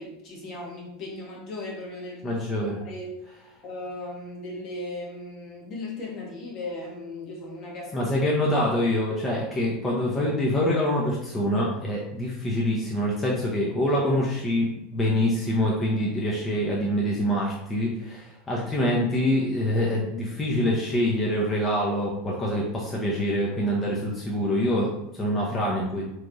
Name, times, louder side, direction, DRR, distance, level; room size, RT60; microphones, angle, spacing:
voice 1, 0.0-2.4 2.8-3.2 3.6-8.1, left 2 dB, 45° left, -3 dB, 1.3 m, -37 dB
voice 2, 2.2-2.8 7.9-26.0, left 1 dB, 20° left, -4 dB, 0.8 m, -25 dB
3.4 x 3.1 x 2.6 m, 0.87 s
figure-of-eight pair, 80°, 0 cm